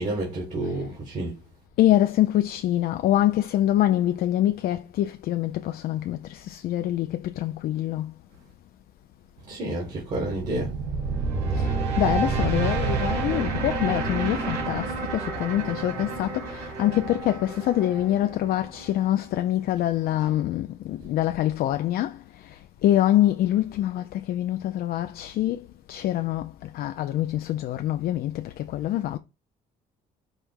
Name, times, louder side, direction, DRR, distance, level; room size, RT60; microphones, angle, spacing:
voice 1, 0.0-1.3 9.4-10.7, right 2 dB, 45° right, 1.5 m, -30 dB
voice 2, 1.8-8.1 11.6-22.2 22.8-29.2, left 13 dB, 60° left, 0.4 m, -25 dB
sound 1, 10.2-19.3, right 4 dB, 90° right, 1.6 m, -29 dB
5.2 x 2.1 x 4.5 m
cardioid pair, 110°, 17 cm